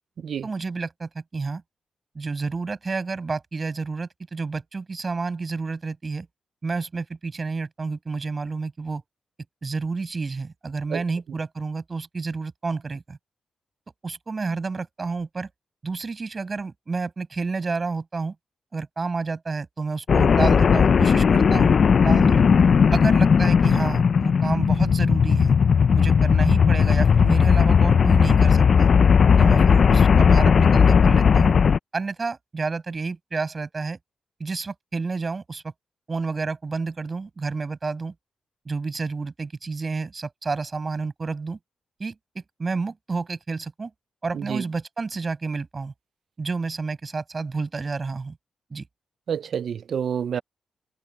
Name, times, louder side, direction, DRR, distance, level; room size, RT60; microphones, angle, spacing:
voice 1, 0.4-1.6 2.2-6.3 6.6-9.0 9.6-13.2 14.0-15.5 15.8-18.4 18.7-21.8 22.0-22.4 22.9-25.5 25.9-28.9 29.4-31.6 31.9-34.0 34.4-35.6 36.1-38.1 38.7-41.6 42.0-43.9 44.2-45.9 46.4-48.4 48.7-48.9, right 4 dB, 30° right, 7.0 m, -30 dB
sound 1, 20.1-31.8, left 6 dB, 50° left, 0.4 m, -17 dB
voice 2, 49.3-50.4, right 8 dB, 65° right, 0.5 m, -28 dB
open air
wide cardioid pair, 150°, 0 cm